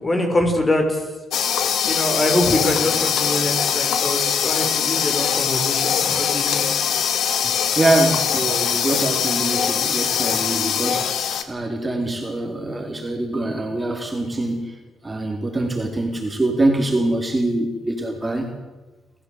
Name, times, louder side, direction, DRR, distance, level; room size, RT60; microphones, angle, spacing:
voice 1, 0.0-1.0 1.9-6.6, left 1 dB, 25° left, 4 dB, 6.3 m, -23 dB
sound 1, 1.3-11.4, left 8 dB, 70° left, 2.3 m, -22 dB
voice 2, 7.7-14.7 15.0-18.5, right 2 dB, 20° right, 2 dB, 4.2 m, -24 dB
29.5 x 15.5 x 8.4 m, 1.1 s
cardioid pair, 90°, 0 cm